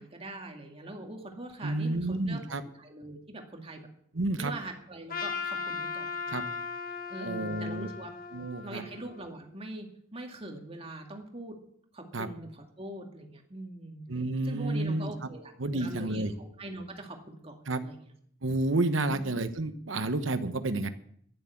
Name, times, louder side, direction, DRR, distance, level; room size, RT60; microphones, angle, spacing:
voice 1, 0.0-2.4 2.8-3.8 4.4-6.6 7.1-8.1 8.6-11.6 11.9-14.0 14.4-17.2 17.4-17.6 17.8-18.0 19.1-19.2, right 1 dB, 30° right, 3 dB, 2.1 m, -42 dB
voice 2, 1.6-2.6 4.1-4.5 6.3-6.4 7.2-7.9 8.3-8.8 12.1-12.3 14.1-15.3 15.6-16.3 17.7-17.8 18.4-20.9, right 2 dB, 75° right, 10 dB, 1.1 m, -30 dB
Trumpet, 5.1-9.4, left 5 dB, 45° left, 1.5 m, -37 dB
11.0 x 10.5 x 8.4 m, 0.67 s
head